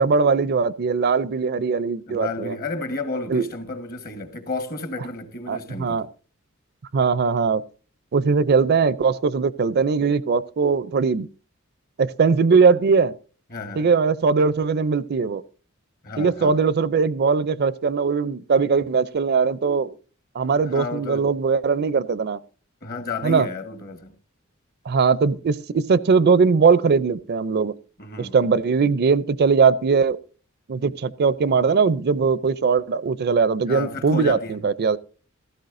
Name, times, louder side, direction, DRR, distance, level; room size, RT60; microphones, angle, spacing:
voice 1, 0.0-2.5 3.3-3.5 5.5-6.1 6.9-7.6 8.1-11.3 12.0-13.1 13.8-15.4 16.2-19.9 20.3-22.4 23.2-23.5 24.9-27.7 28.2-30.2 30.7-35.0, right 5 dB, 50° right, 0.5 m, -20 dB
voice 2, 2.1-6.0 13.5-13.9 16.0-16.6 20.6-21.3 22.8-24.1 28.0-28.3 33.7-34.6, left 3 dB, 45° left, 1.4 m, -32 dB
16.0 x 13.5 x 2.6 m
head